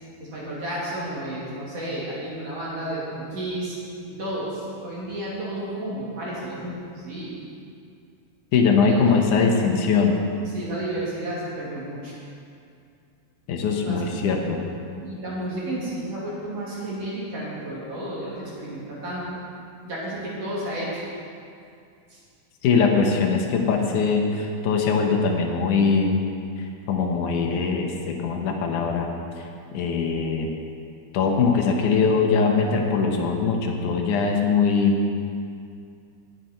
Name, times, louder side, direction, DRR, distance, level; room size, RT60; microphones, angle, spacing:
voice 1, 0.2-3.8 4.1-7.4 8.8-9.0 10.5-12.2 13.7-14.0 15.0-19.4 19.8-21.0 22.1-22.2, right 1 dB, 45° right, -7 dB, 3.2 m, -32 dB
voice 2, 8.5-10.2 13.5-14.6 22.6-26.3 26.6-29.1 29.4-29.5 29.7-30.5 31.1-35.0, left 5 dB, 70° left, 2 dB, 2.1 m, -21 dB
19.0 x 8.0 x 4.4 m, 2.4 s
omnidirectional pair, 4.5 m